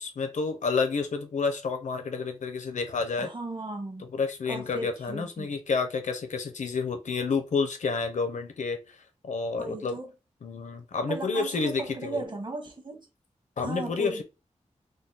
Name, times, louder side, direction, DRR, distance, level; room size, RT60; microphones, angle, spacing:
voice 1, 0.0-3.3 4.1-8.8 9.2-10.0 10.4-12.2 13.6-14.2, left 4 dB, 75° left, 0.8 m, -29 dB
voice 2, 3.2-4.1 4.5-5.5 9.6-10.1 11.1-13.1 13.6-14.2, right 2 dB, 40° right, 1.2 m, -36 dB
3.8 x 2.3 x 4.0 m
wide cardioid pair, 110°, 12 cm